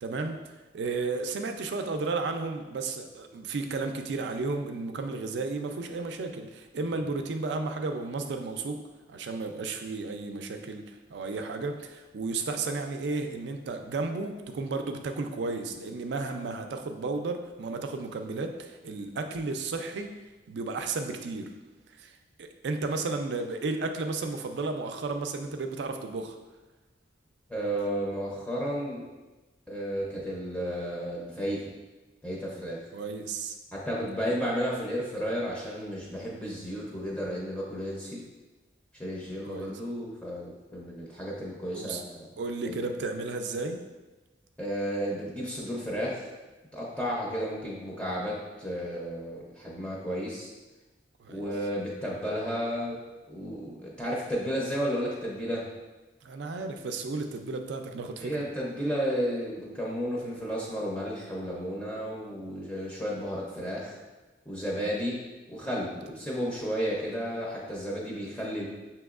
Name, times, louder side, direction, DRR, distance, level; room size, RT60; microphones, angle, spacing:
voice 1, 0.0-8.8 9.1-20.1 20.5-21.5 22.0-26.4 32.9-33.6 39.5-39.7 41.7-42.0 42.4-43.8 51.2-51.5 56.2-58.4, right 3 dB, 80° right, 6 dB, 0.4 m, -33 dB
voice 2, 27.5-29.0 29.7-31.6 32.2-32.8 33.7-38.2 38.9-42.3 42.6-42.8 44.6-46.3 46.7-50.5 51.3-53.0 53.3-55.7 58.2-64.0 64.5-65.2 65.5-68.7, equal, 5° left, -5 dB, 0.5 m, -33 dB
6.0 x 2.9 x 2.4 m, 1.2 s
head